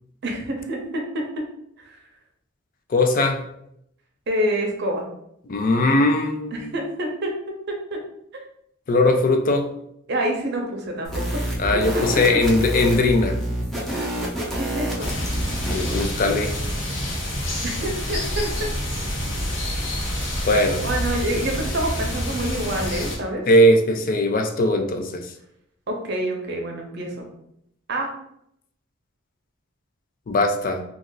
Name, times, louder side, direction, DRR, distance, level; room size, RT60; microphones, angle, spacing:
voice 1, 0.2-1.3 1.8-2.0 4.3-5.0 6.5-7.3 7.9-8.0 10.1-11.4 11.9-12.2 14.5-15.1 17.6-18.7 20.5-23.4 25.9-27.3 27.9-28.1, right 1 dB, 60° right, 1 dB, 0.7 m, -27 dB
voice 2, 2.9-3.4 5.5-6.7 8.9-9.7 11.6-13.4 15.7-16.5 20.4-20.8 23.5-25.3 30.3-30.8, left 1 dB, 45° left, 5 dB, 0.4 m, -19 dB
sound 1, 11.0-16.1, right 1 dB, ahead, 0.7 m, -27 dB
sound 2, 15.0-23.2, equal, 70° left, 0.8 m, -28 dB
2.5 x 2.4 x 3.8 m, 0.75 s
head